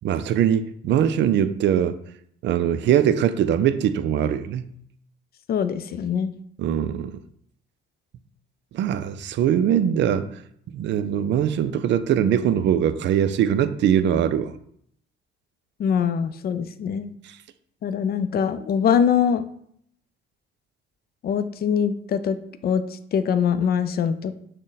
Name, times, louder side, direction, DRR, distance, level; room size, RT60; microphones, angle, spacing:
voice 1, 0.0-2.0 2.4-4.7 6.6-7.1 8.7-10.3 10.7-14.5, right 9 dB, 65° right, 0.4 m, -21 dB
voice 2, 5.5-6.3 15.8-17.1 17.8-19.4 21.2-22.4 22.6-22.8 23.1-24.3, left 7 dB, 50° left, 0.4 m, -23 dB
6.2 x 2.1 x 4.0 m
cardioid pair, 90°, 20 cm